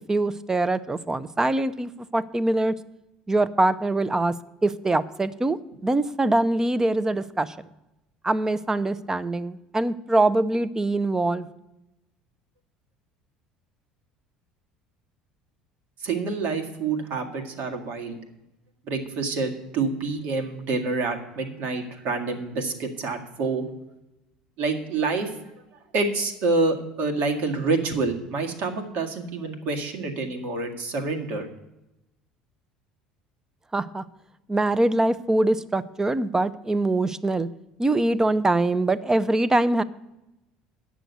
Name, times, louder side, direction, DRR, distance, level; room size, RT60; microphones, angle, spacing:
voice 1, 0.1-2.7 3.3-4.3 4.6-5.6 5.8-7.5 8.2-11.5 33.7-34.0 34.5-37.5 37.8-39.8, right 2 dB, 15° right, 15 dB, 0.7 m, -23 dB
voice 2, 16.0-18.2 18.9-23.6 24.6-25.3 25.9-31.5, right 3 dB, 60° right, 4 dB, 1.8 m, -27 dB
9.0 x 6.3 x 8.2 m, 0.93 s
hypercardioid pair, 65°, 3 cm